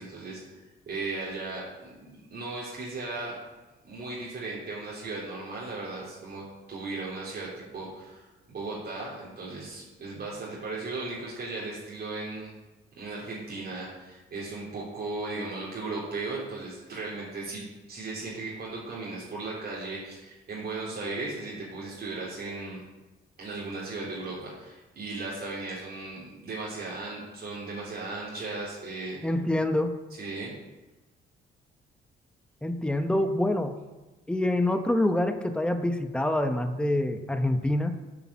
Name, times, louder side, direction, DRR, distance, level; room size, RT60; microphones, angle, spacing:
voice 1, 0.0-3.4 3.8-12.5 13.0-22.8 23.4-29.2 30.2-30.5, right 3 dB, 50° right, -6 dB, 3.3 m, -36 dB
voice 2, 29.2-30.0 32.6-33.7 34.3-38.0, left 1 dB, 5° left, 7 dB, 1.0 m, -26 dB
8.3 x 7.4 x 7.4 m, 1.1 s
cardioid pair, 90°, 20 cm